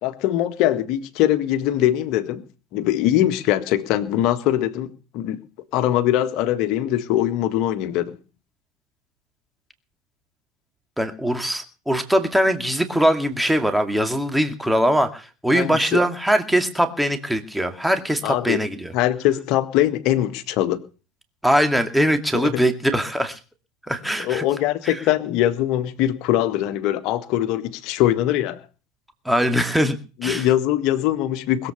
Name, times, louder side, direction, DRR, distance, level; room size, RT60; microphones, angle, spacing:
voice 1, 0.0-2.4 2.7-4.9 5.1-5.4 5.7-8.2 15.5-16.0 18.2-18.6 18.9-20.8 22.3-22.6 24.2-28.6 30.2-31.7, left 13 dB, 55° left, 1.7 m, -22 dB
voice 2, 11.0-18.9 21.4-23.4 23.9-24.4 24.9-25.0 29.3-30.5, equal, 5° right, 2.2 m, -21 dB
21.0 x 8.1 x 6.8 m
hypercardioid pair, 80°, 0 cm